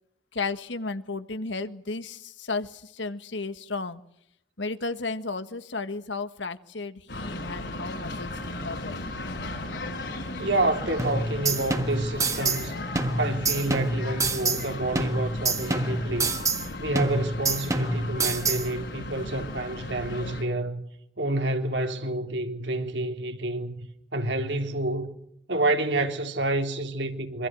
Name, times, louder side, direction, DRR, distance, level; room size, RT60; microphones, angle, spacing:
voice 1, 0.3-4.0 4.6-8.3 8.6-9.0, left 3 dB, 85° left, 1.6 m, -33 dB
sound 1, 7.1-20.4, left 2 dB, 70° left, 5.5 m, -36 dB
voice 2, 10.4-12.8 13.2-16.4 16.8-20.8 21.2-23.8 24.1-25.1 25.5-27.5, right 2 dB, 75° right, 3.4 m, -28 dB
sound 2, 11.0-12.7 13.0-14.7 15.0-16.7 17.0-18.7, right 3 dB, 15° right, 1.7 m, -27 dB
26.5 x 25.5 x 6.3 m
head